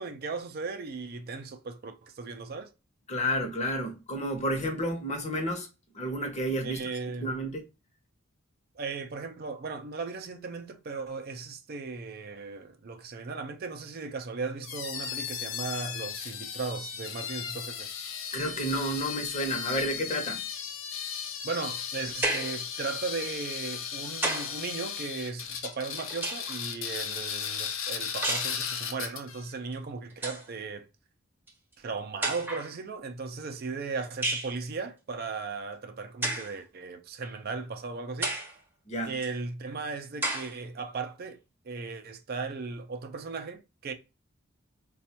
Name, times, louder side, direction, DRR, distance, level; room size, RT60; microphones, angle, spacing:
voice 1, 0.0-2.7 6.6-7.3 8.8-17.9 21.4-30.9 31.8-38.3 39.0-41.4 41.6-43.9, right 4 dB, 50° right, 0.4 m, -37 dB
voice 2, 3.1-5.7 5.9-6.9 7.2-7.6 18.3-20.4 38.9-39.1, equal, 35° left, 0.8 m, -31 dB
sound 1, 14.6-29.4, left 7 dB, 80° left, 0.6 m, -36 dB
sound 2, 22.2-22.6 23.7-24.6 25.7-26.6 28.2-28.6 29.7-29.8 30.1-30.5 31.5-31.6 32.2-32.7 34.2-34.6 36.2-36.6 37.2-37.3 38.2-38.6 39.2-39.3 40.2-40.6, right 2 dB, 10° right, 0.7 m, -32 dB
4.1 x 2.3 x 2.8 m
head